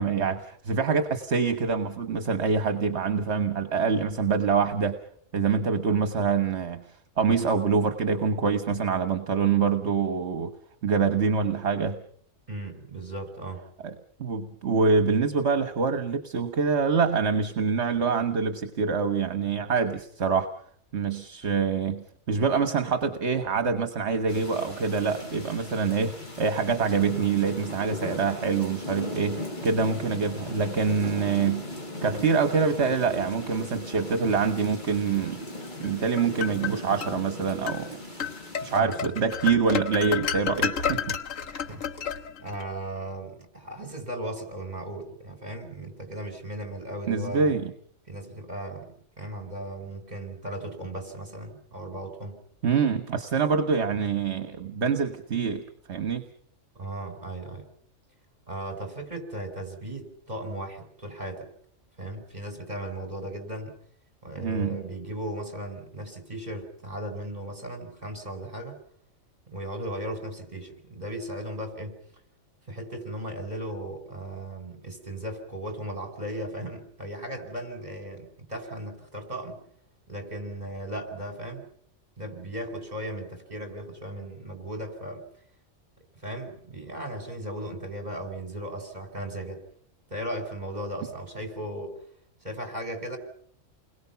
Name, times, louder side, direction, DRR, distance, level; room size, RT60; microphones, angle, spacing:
voice 1, 0.0-5.0 5.3-6.8 7.2-10.5 10.8-12.0 13.8-13.9 14.2-20.5 20.9-31.7 32.0-35.4 35.8-38.0 38.6-41.2 47.1-47.7 52.6-55.6 55.9-56.2 64.4-64.9, right 5 dB, 60° right, 9 dB, 1.6 m, -25 dB
voice 2, 12.5-13.6 38.8-39.1 41.7-41.9 42.4-47.6 48.1-48.9 49.2-52.4 56.8-57.7 58.5-61.5 62.0-63.8 64.2-68.8 69.5-72.0 72.7-79.6 80.1-81.6 82.2-85.2 86.2-89.6 90.1-91.9 92.4-93.2, right 1 dB, 35° right, 6 dB, 5.0 m, -36 dB
sound 1, 24.3-38.8, left 1 dB, 40° left, 4.1 m, -38 dB
sound 2, 35.8-37.1 37.7-37.8 38.2-42.6, left 7 dB, 85° left, 1.7 m, -31 dB
29.5 x 22.0 x 5.8 m, 0.62 s
omnidirectional pair, 1.3 m